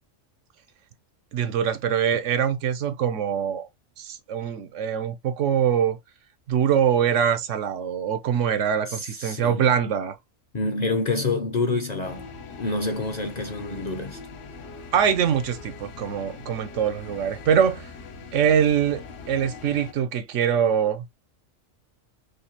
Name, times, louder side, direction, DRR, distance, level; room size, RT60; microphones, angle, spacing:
voice 1, 1.3-3.7 4.0-6.0 6.5-10.2 14.9-17.9 18.3-21.0, right 8 dB, 75° right, 1.0 m, -23 dB
voice 2, 8.9-9.7 10.5-12.3 12.6-14.2, left 3 dB, 45° left, 0.6 m, -27 dB
sound 1, 12.0-19.9, left 4 dB, 70° left, 1.1 m, -41 dB
5.1 x 2.3 x 2.7 m
omnidirectional pair, 1.3 m